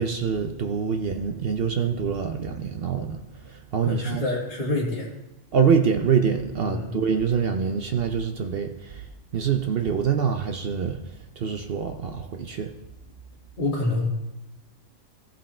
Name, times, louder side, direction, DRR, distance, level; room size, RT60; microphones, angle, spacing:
voice 1, 0.0-3.2 3.5-4.3 5.5-9.0 9.3-11.0 11.4-12.7, right 6 dB, 55° right, 5 dB, 0.7 m, -25 dB
voice 2, 3.8-5.1 6.6-6.9 13.6-14.1, left 2 dB, 40° left, -5 dB, 1.9 m, -27 dB
15.0 x 5.5 x 4.3 m, 0.92 s
omnidirectional pair, 1.4 m